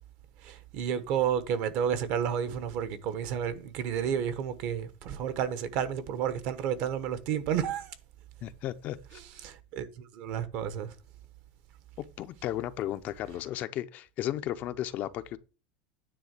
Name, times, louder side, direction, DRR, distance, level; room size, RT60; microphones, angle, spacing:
voice 1, 0.4-7.9 9.4-9.9 10.1-10.9, right 8 dB, 50° right, 1.1 m, -31 dB
voice 2, 8.4-9.2 12.2-15.4, left 13 dB, 35° left, 0.5 m, -34 dB
9.7 x 3.7 x 6.5 m
supercardioid pair, 160°, 5 cm